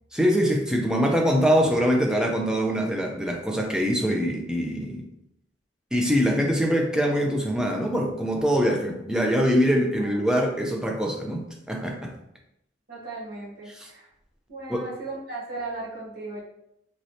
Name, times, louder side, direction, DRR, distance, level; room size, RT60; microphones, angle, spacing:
voice 1, 0.1-5.1 5.9-12.1 13.7-13.9 14.7-14.9, equal, 5° right, 0 dB, 0.4 m, -23 dB
voice 2, 12.9-14.1 14.5-16.4, right 2 dB, 55° right, -6 dB, 1.2 m, -36 dB
3.0 x 3.0 x 2.7 m, 0.80 s
head